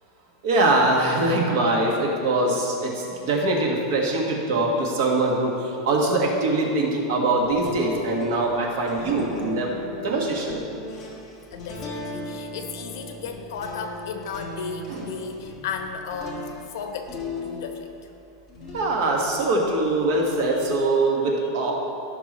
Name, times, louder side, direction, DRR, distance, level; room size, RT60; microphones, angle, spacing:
voice 1, 0.4-10.6 14.9-15.1 18.7-21.7, right 2 dB, 55° right, -1 dB, 1.7 m, -23 dB
sound 1, 7.4-18.0 18.5-20.8, left 1 dB, 15° left, 1.5 m, -38 dB
voice 2, 11.5-17.9 20.5-20.6 21.4-21.7, left 5 dB, 65° left, 5 dB, 1.0 m, -35 dB
15.5 x 6.0 x 3.1 m, 2.7 s
supercardioid pair, 175°, 2 cm